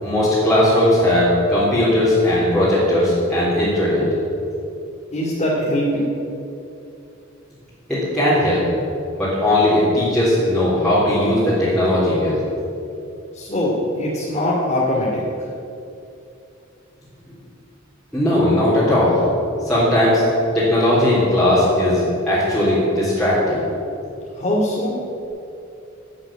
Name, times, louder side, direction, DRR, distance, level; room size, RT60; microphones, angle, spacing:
voice 1, 0.0-4.0 7.9-8.6 9.1-12.4 18.1-19.2 19.6-20.2 20.5-23.6, left 1 dB, 5° left, -12 dB, 3.7 m, -18 dB
voice 2, 5.1-6.1 13.3-15.2 24.3-25.0, left 1 dB, 35° left, -5 dB, 2.5 m, -21 dB
11.5 x 9.0 x 9.1 m, 2.7 s
head